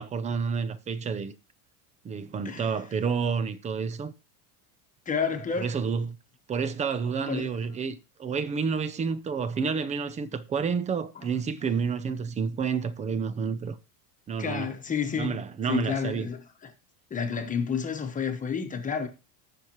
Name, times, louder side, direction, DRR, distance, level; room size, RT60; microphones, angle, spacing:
voice 1, 0.0-1.3 2.0-4.1 5.6-6.2 6.5-13.8 14.3-14.7 15.2-16.3, right 6 dB, 15° right, 0.5 m, -29 dB
voice 2, 5.1-5.7 7.2-7.5 14.4-15.4 15.7-16.7 17.1-19.1, left 6 dB, 20° left, 1.2 m, -30 dB
19.0 x 6.5 x 3.0 m
supercardioid pair, 140°, 43 cm